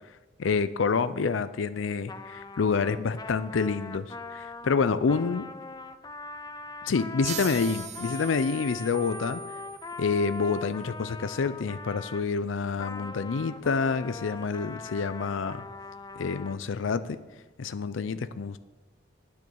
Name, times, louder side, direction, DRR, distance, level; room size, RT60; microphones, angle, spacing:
voice 1, 0.4-5.5 6.9-9.4 10.0-15.6 16.2-17.2 17.6-18.6, left 5 dB, 70° left, 13 dB, 0.5 m, -28 dB
Trumpet, 2.1-12.3 12.8-16.6, left 3 dB, 20° left, 0.5 m, -41 dB
sound 1, 7.2-10.5, right 9 dB, 35° right, 0.6 m, -41 dB
10.0 x 9.3 x 7.0 m, 1.2 s
head